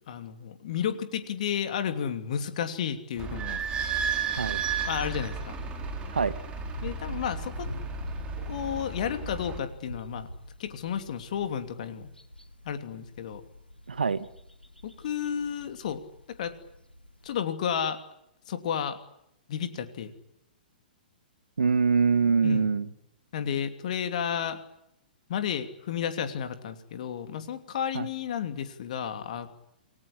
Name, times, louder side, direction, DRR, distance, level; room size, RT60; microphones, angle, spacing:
voice 1, 0.0-3.6 4.9-5.5 6.8-7.7 8.4-10.3 10.6-12.1 12.6-13.4 14.8-16.0 16.3-16.5 17.2-18.0 18.5-19.0 19.5-20.1 22.4-22.7 23.3-24.6 25.3-29.5, left 8 dB, 50° left, 9 dB, 2.9 m, -32 dB
Idling / Squeak, 3.2-9.6, right 6 dB, 20° right, 5.0 m, -33 dB
sound 1, 4.6-17.4, left 1 dB, 90° left, 2.7 m, -44 dB
voice 2, 13.9-14.3 21.6-22.9 27.9-28.1, right 5 dB, 70° right, 17 dB, 1.2 m, -24 dB
28.0 x 20.0 x 10.0 m, 0.80 s
figure-of-eight pair, 115°, 5 cm